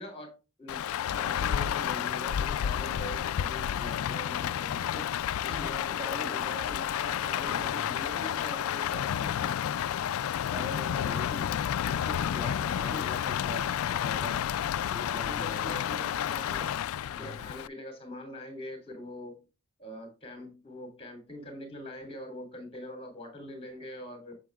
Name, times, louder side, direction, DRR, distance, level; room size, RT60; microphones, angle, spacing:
voice 1, 0.0-5.1 5.4-9.1 12.3-13.1 15.3-16.8 17.2-19.4 19.8-24.4, left 1 dB, 25° left, 3.1 m, -43 dB
Rain, 0.7-17.7, left 9 dB, 75° left, 0.3 m, -31 dB
voice 2, 5.5-6.4 7.5-7.9 9.0-9.5 10.5-11.5 11.9-14.4 14.9-15.8 17.2-17.5, left 2 dB, 5° right, 1.9 m, -42 dB
8.4 x 6.5 x 2.3 m
head